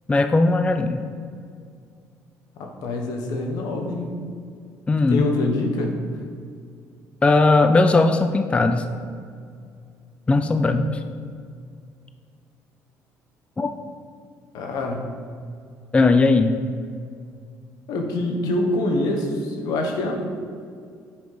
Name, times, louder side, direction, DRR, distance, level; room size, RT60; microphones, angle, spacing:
voice 1, 0.1-1.0 4.9-5.3 7.2-8.8 10.3-10.9 13.6-13.7 15.9-16.6, left 3 dB, 15° left, 8 dB, 0.3 m, -18 dB
voice 2, 2.6-4.0 5.1-5.9 14.5-15.1 17.9-20.3, left 2 dB, 75° left, 3 dB, 1.0 m, -25 dB
7.0 x 5.2 x 3.2 m, 2.3 s
supercardioid pair, 85°, 7 cm